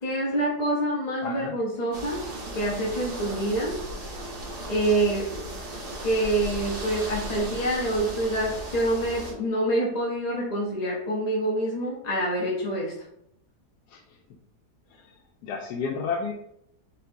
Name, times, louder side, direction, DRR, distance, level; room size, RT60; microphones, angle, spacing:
voice 1, 0.0-2.2 2.5-3.8 4.7-5.3 6.0-12.9, right 1 dB, 35° left, -4 dB, 0.7 m, -26 dB
voice 2, 1.2-1.6 13.9-14.0 14.9-15.0 15.4-16.3, left 5 dB, 85° left, 0 dB, 1.2 m, -31 dB
sound 1, 1.9-9.3, right 1 dB, 90° right, 1.9 m, -36 dB
4.4 x 4.3 x 2.7 m, 0.73 s
omnidirectional pair, 1.7 m